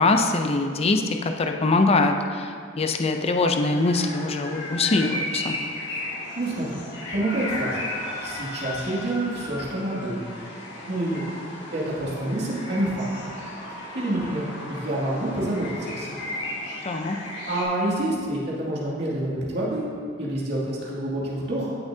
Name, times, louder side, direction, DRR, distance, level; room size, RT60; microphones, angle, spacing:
voice 1, 0.0-5.6 16.9-17.2, left 3 dB, 30° left, 5 dB, 0.5 m, -23 dB
sound 1, 3.7-17.6, left 1 dB, 60° left, 2.1 m, -35 dB
voice 2, 6.3-6.8 7.1-7.8 8.2-10.2 10.9-11.2 11.7-13.1 13.9-16.2 17.5-19.9 20.2-21.7, right 1 dB, 60° right, -7 dB, 2.4 m, -27 dB
16.0 x 6.9 x 2.7 m, 2.2 s
head